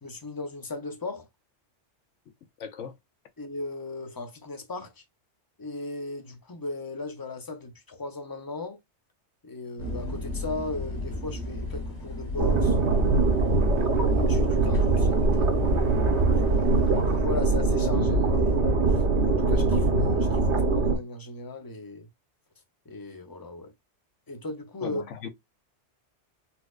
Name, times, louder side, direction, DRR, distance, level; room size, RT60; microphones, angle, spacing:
voice 1, 0.0-1.3 3.4-5.0 5.6-8.8 9.4-12.8 13.5-15.5 16.2-22.1 22.9-23.7 24.3-25.0, left 2 dB, 25° left, 0.5 m, -37 dB
voice 2, 2.6-2.9 24.8-25.3, left 6 dB, 90° left, 1.0 m, -37 dB
sound 1, 9.8-17.2, left 2 dB, 40° left, 1.5 m, -36 dB
sound 2, 12.4-21.0, right 3 dB, 70° right, 1.2 m, -22 dB
4.2 x 2.3 x 2.3 m
omnidirectional pair, 1.2 m